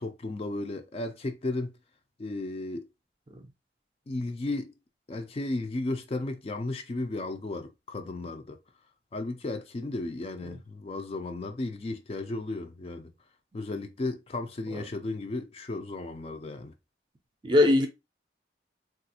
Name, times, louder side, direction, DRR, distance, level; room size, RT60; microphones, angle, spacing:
voice 1, 0.0-1.7 2.2-2.9 4.1-4.7 5.1-8.6 9.1-13.1 13.5-16.7, left 2 dB, 35° left, 0.4 m, -34 dB
voice 2, 17.4-17.9, left 2 dB, 25° right, 0.5 m, -22 dB
3.3 x 2.4 x 2.7 m
head